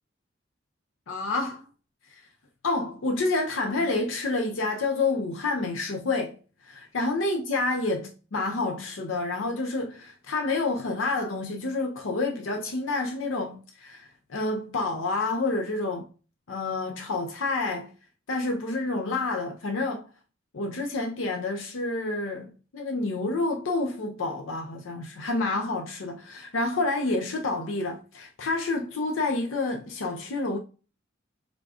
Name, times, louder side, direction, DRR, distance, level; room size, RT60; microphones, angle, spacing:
voice 1, 1.1-1.6 2.1-2.2 2.6-6.4 6.6-16.1 16.5-17.9 18.3-20.1 20.5-30.6, left 3 dB, 90° left, 0.6 m, -29 dB
4.8 x 3.6 x 2.3 m
head